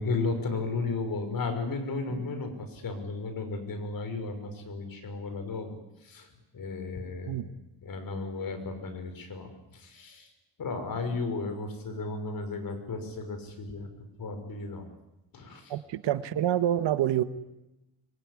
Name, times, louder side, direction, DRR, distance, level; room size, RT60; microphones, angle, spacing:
voice 1, 0.0-6.3 6.5-7.4 7.8-10.3 10.6-13.9 14.2-14.8 15.3-15.7, left 3 dB, 55° left, 7 dB, 5.8 m, -34 dB
voice 2, 15.7-17.2, right 11 dB, 90° right, 11 dB, 1.6 m, -27 dB
24.5 x 23.0 x 9.9 m, 0.94 s
cardioid pair, 120°, 42 cm